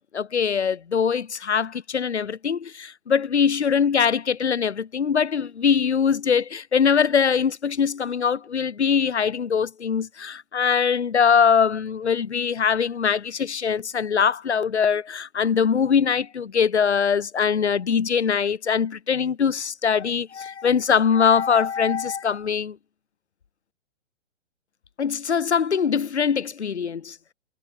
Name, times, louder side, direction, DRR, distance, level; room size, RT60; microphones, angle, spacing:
voice 1, 0.1-22.8 25.0-27.2, left 6 dB, 65° left, 1.6 m, -22 dB
figure-of-eight pair, 120°, 36 cm